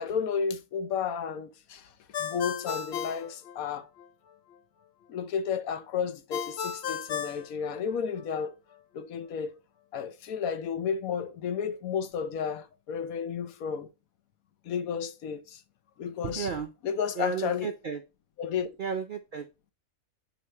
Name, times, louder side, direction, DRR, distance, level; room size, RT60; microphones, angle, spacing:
voice 1, 0.0-1.9 2.2-3.9 5.1-8.5 8.9-9.6 9.9-13.9 14.6-15.6 16.0-16.5 16.8-17.7 18.4-18.7, left 7 dB, 80° left, 1.2 m, -32 dB
Ringtone, 2.1-4.1 6.3-8.3, left 8 dB, 60° left, 0.7 m, -35 dB
voice 2, 16.2-16.7 17.2-18.0 18.8-19.5, right 6 dB, 65° right, 0.5 m, -33 dB
7.4 x 4.1 x 4.2 m
omnidirectional pair, 1.5 m